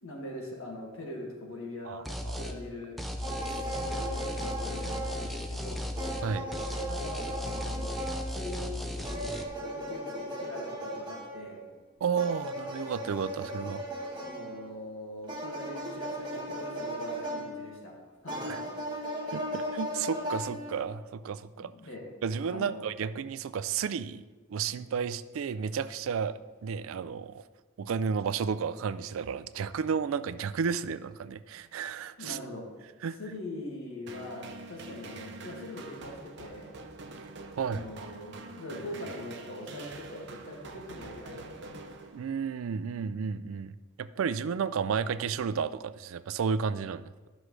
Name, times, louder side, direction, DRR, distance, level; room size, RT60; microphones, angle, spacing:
voice 1, 0.0-2.1 2.4-3.0 3.5-5.8 6.8-7.9 8.3-11.6 14.2-17.9 18.2-18.6 21.6-22.0 22.5-22.9 32.2-32.6 33.2-36.7 37.6-41.7, left 1 dB, 80° left, -1 dB, 1.9 m, -42 dB
voice 2, 1.9-2.5 6.2-6.5 12.0-13.8 18.5-18.6 19.3-21.7 22.2-24.2 24.5-27.4 27.8-32.4 33.0-33.2 37.6-37.9 42.1-47.1, right 6 dB, 80° right, 15 dB, 0.4 m, -32 dB
sound 1, 2.1-2.6 3.0-6.3 6.5-9.4, left 1 dB, ahead, 0.5 m, -36 dB
sound 2, 3.2-5.6 6.0-11.6 12.2-14.7 15.3-17.9 18.3-20.9, equal, 20° right, 1.4 m, -37 dB
sound 3, 34.1-42.6, right 3 dB, 55° right, 0.7 m, -46 dB
12.0 x 6.3 x 3.2 m, 1.3 s
head